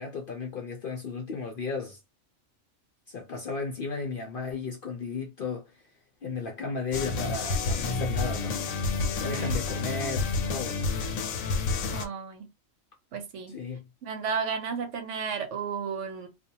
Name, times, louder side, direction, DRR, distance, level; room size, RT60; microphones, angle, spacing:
voice 1, 0.0-2.0 3.1-5.6 6.2-8.6 9.2-10.8 13.5-13.9, left 4 dB, 55° left, 0.6 m, -34 dB
sound 1, 6.9-12.1, left 4 dB, 85° left, 1.0 m, -29 dB
voice 2, 11.9-12.5 13.1-13.6 14.0-16.3, right 6 dB, 70° right, 1.0 m, -33 dB
2.4 x 2.2 x 2.8 m
omnidirectional pair, 1.4 m